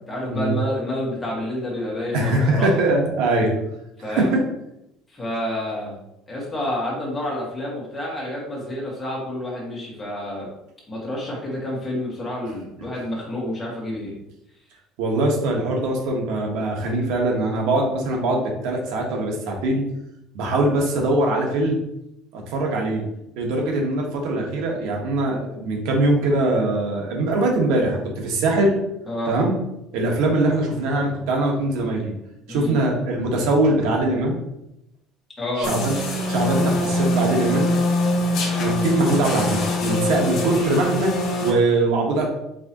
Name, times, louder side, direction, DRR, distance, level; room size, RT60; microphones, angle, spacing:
voice 1, 0.0-2.7 4.0-4.3 5.1-6.0 6.3-10.5 10.9-14.2 29.1-29.4 32.5-32.8 35.4-35.7, left 1 dB, 10° left, -4 dB, 1.7 m, -29 dB
voice 2, 2.1-3.5 4.1-4.4 15.0-19.8 20.3-21.8 22.3-23.0 23.4-28.7 29.3-29.5 29.9-32.1 32.5-34.4 35.6-35.9 36.3-37.7 38.6-41.1 41.4-42.3, right 2 dB, 80° right, 0 dB, 1.3 m, -22 dB
sound 1, 35.6-41.5, left 1 dB, 55° left, 1.3 m, -23 dB
4.8 x 3.7 x 3.0 m, 0.84 s
cardioid pair, 145°, 0 cm